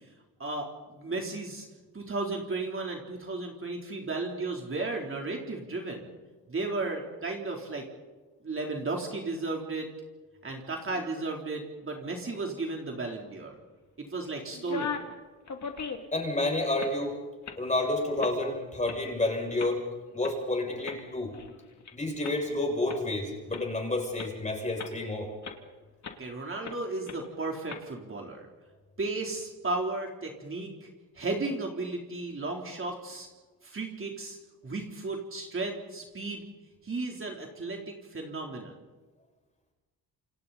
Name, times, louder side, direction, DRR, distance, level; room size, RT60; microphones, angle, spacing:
voice 1, 0.4-1.7 1.9-6.1 6.5-7.8 8.4-9.9 10.4-13.6 14.0-14.9 26.2-28.5 29.0-30.9 31.2-33.3 33.6-34.4 34.6-36.5 36.8-38.7, right 3 dB, 35° right, 0 dB, 3.8 m, -34 dB
sound 1, 14.5-15.1 15.5-16.2 16.6-17.0 17.5-17.6 18.2-18.5 18.9-19.0 19.6-19.7 20.2-20.3 20.8-21.9 22.2-22.3 22.9-23.0 23.5-23.6 24.2-24.3 24.8-25.0 25.4-25.6 26.0-26.2 26.6-26.8 27.1-27.2 27.7-27.8, left 5 dB, 50° left, 2.8 m, -38 dB
voice 2, 16.1-17.2 17.6-19.8 20.1-21.4 21.9-25.3, left 2 dB, 20° left, 1 dB, 7.3 m, -30 dB
28.5 x 27.5 x 4.3 m, 1.3 s
cardioid pair, 105°, 37 cm